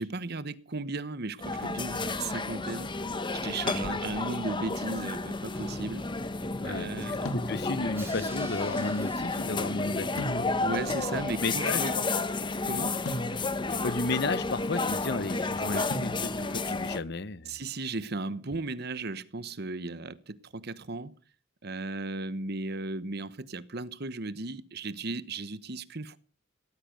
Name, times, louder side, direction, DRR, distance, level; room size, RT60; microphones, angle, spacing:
voice 1, 0.0-2.9 3.4-6.0 6.6-7.2 10.6-11.9 12.6-13.0 15.7-15.8 17.5-21.2 21.6-26.2, right 3 dB, 50° right, 1.1 m, -35 dB
sound 1, 1.4-17.0, left 3 dB, 25° left, 1.2 m, -32 dB
Drum, 5.6-10.4, right 1 dB, 10° right, 4.0 m, -45 dB
voice 2, 6.6-10.5 11.4-12.3 13.8-17.6, left 3 dB, 55° left, 0.9 m, -33 dB
sound 2, 7.3-8.0 10.2-10.9 13.1-13.8 15.9-16.7, equal, 85° left, 2.2 m, -38 dB
18.0 x 13.5 x 5.3 m
head